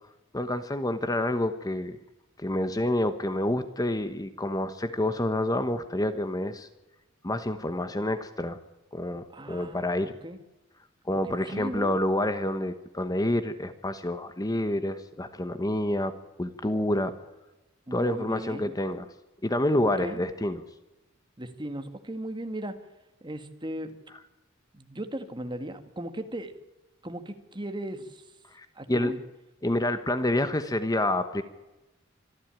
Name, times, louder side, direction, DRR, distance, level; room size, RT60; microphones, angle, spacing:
voice 1, 0.3-2.0 2.4-6.7 7.2-8.6 8.9-10.1 11.0-17.1 17.9-19.1 19.4-20.6 28.5-29.1 29.6-31.4, left 1 dB, 20° left, 10 dB, 1.0 m, -28 dB
voice 2, 9.3-9.9 10.2-10.4 11.1-12.0 17.9-18.7 19.8-20.2 21.4-22.8 23.2-24.0 24.7-26.6 27.0-28.3 28.8-29.2, right 1 dB, 25° right, 8 dB, 1.9 m, -37 dB
26.0 x 11.0 x 8.9 m, 1.0 s
head